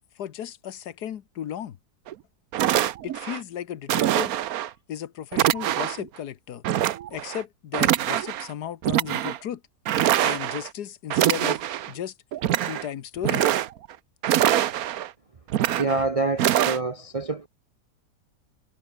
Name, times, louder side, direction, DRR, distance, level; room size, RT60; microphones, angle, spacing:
voice 1, 0.2-1.8 3.0-4.4 4.9-6.6 7.1-9.6 10.2-11.6 11.9-12.1 12.6-13.5, left 10 dB, 80° left, 1.6 m, -35 dB
sound 1, 2.1-2.2 2.5-3.4 3.9-4.7 5.3-6.1 6.6-7.4 7.7-8.5 8.8-9.4 9.9-10.7 11.1-11.9 12.3-12.9 13.2-13.9 14.2-15.1 15.5-16.0 16.4-16.8, right 12 dB, 70° right, 1.2 m, -24 dB
voice 2, 15.8-17.5, right 3 dB, 40° right, 0.5 m, -26 dB
omnidirectional pair, 1.7 m